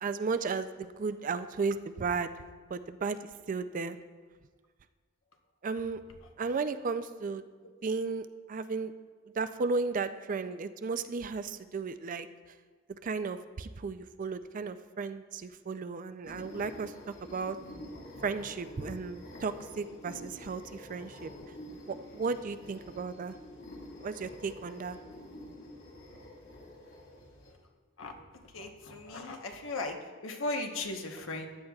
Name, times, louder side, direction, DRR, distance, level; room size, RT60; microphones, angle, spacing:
voice 1, 0.0-2.3 2.7-4.0 5.6-6.0 6.4-7.4 7.8-8.9 9.4-12.3 13.0-16.9 17.2-17.6 18.2-21.3 21.9-23.4 24.0-25.0, right 4 dB, 40° right, 11 dB, 0.4 m, -34 dB
sound 1, 16.2-27.5, left 1 dB, 60° left, 2.7 m, -48 dB
voice 2, 28.5-31.5, left 2 dB, 85° left, 3 dB, 1.1 m, -37 dB
15.0 x 10.0 x 2.4 m, 1.5 s
head